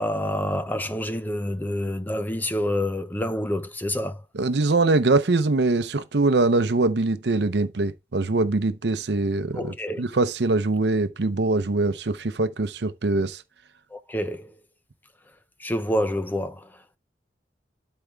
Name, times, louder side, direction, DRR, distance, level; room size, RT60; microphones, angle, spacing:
voice 1, 0.0-4.2 9.5-10.0 13.9-14.5 15.6-17.0, left 1 dB, 10° left, 0.6 m, -28 dB
voice 2, 4.4-13.4, right 3 dB, 70° right, 0.7 m, -23 dB
12.0 x 4.5 x 3.4 m
head